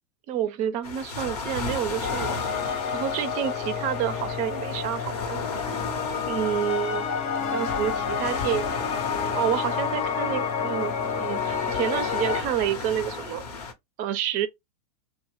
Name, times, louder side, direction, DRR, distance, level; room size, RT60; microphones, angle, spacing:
voice 1, 0.3-5.6 6.3-7.0 7.5-9.0 9.3-13.4 14.0-14.5, right 10 dB, 40° right, 0.5 m, -29 dB
sound 1, 0.8-13.7, left 4 dB, 75° left, 0.9 m, -36 dB
sound 2, 2.0-12.4, left 6 dB, 35° left, 0.7 m, -29 dB
2.9 x 2.1 x 3.1 m
hypercardioid pair, 110°, 20 cm